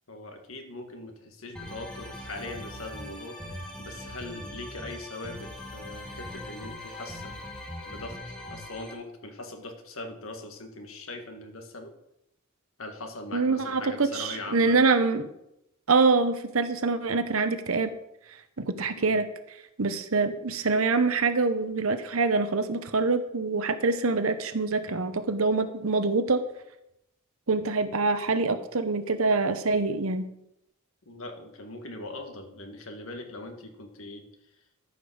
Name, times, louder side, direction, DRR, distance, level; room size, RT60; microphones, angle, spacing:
voice 1, 0.1-7.4 7.9-11.9 12.8-14.8 18.9-19.2 31.1-34.3, left 2 dB, 75° left, 5 dB, 1.8 m, -41 dB
sound 1, 1.6-8.9, left 1 dB, 5° left, 1.7 m, -41 dB
voice 2, 13.3-15.3 15.9-17.9 18.6-19.3 19.8-26.4 27.5-30.3, right 3 dB, 80° right, 10 dB, 0.9 m, -25 dB
13.5 x 5.2 x 6.4 m, 0.83 s
head